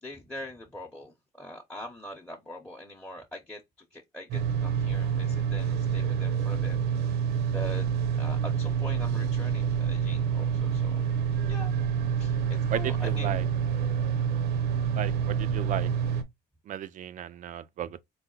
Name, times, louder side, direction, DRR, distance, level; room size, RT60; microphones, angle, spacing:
voice 1, 0.0-7.3 7.5-7.9 8.1-11.0 11.4-11.7 12.1-13.7, left 1 dB, 5° left, 0.7 m, -43 dB
sound 1, 4.3-16.2, right 7 dB, 75° right, 0.7 m, -27 dB
voice 2, 12.7-13.4 14.9-15.9 16.7-18.0, right 11 dB, 50° right, 0.4 m, -34 dB
4.0 x 2.1 x 3.8 m
cardioid pair, 110°, 17 cm